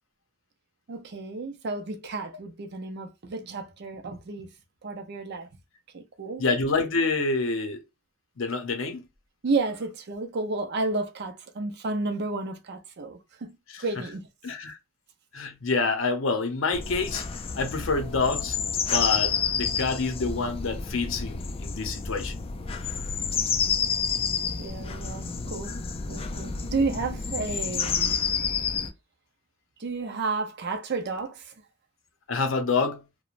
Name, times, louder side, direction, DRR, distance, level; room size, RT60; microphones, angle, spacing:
voice 1, 0.9-4.5 4.8-5.5 5.9-6.4 9.4-13.5 13.8-14.3 23.4-23.5 24.6-25.8 26.1-28.2 29.8-31.5, right 3 dB, 55° right, 0.5 m, -32 dB
voice 2, 6.4-7.8 8.4-9.0 13.7-13.8 14.4-14.8 15.3-17.3 17.6-18.6 18.9-22.3 32.3-33.0, left 4 dB, 70° left, 0.6 m, -27 dB
sound 1, 16.7-28.9, left 6 dB, 30° left, 0.3 m, -29 dB
3.0 x 2.1 x 2.4 m
head